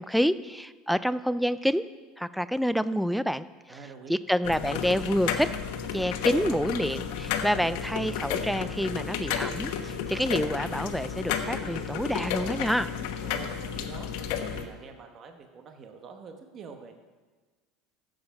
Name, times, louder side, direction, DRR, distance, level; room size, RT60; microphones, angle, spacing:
voice 1, 0.0-1.9 2.2-3.8 4.1-5.5 5.9-12.9, equal, ahead, 14 dB, 0.3 m, -28 dB
voice 2, 3.7-4.2 13.2-14.1 14.5-17.0, right 5 dB, 30° right, 5 dB, 1.0 m, -46 dB
sound 1, 4.4-14.6, left 7 dB, 65° left, 1.2 m, -32 dB
14.5 x 7.7 x 5.8 m, 1.4 s
cardioid pair, 160°, 0 cm